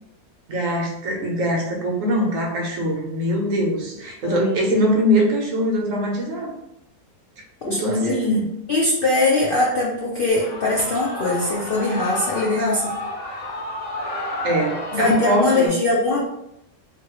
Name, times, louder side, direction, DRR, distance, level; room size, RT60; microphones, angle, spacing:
voice 1, 0.5-6.5 7.6-8.4 14.4-15.7, equal, 65° right, 0 dB, 1.0 m, -22 dB
voice 2, 4.2-4.6 7.7-8.2 8.7-12.9 14.9-16.2, left 2 dB, 80° left, -4 dB, 0.5 m, -21 dB
Shout / Cheering, 10.3-15.7, left 1 dB, 40° left, 1.2 m, -31 dB
2.9 x 2.6 x 2.9 m, 0.82 s
omnidirectional pair, 1.6 m